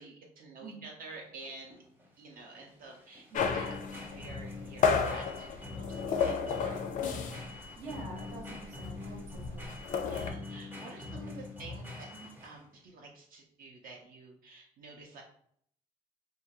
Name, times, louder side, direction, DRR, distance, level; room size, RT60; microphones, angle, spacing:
voice 1, 0.0-1.8 2.2-3.8 4.1-6.9 10.0-15.2, right 3 dB, 60° right, 0 dB, 0.6 m, -49 dB
sound 1, 1.1-12.7, left 3 dB, 10° right, 0.7 m, -44 dB
sound 2, 3.3-7.6 7.9-8.1 8.4-10.3, left 6 dB, 50° left, 0.4 m, -32 dB
voice 2, 7.5-9.7 12.1-12.3, right 3 dB, 75° right, -1 dB, 1.0 m, -47 dB
2.6 x 2.2 x 2.8 m, 0.64 s
cardioid pair, 110°, 17 cm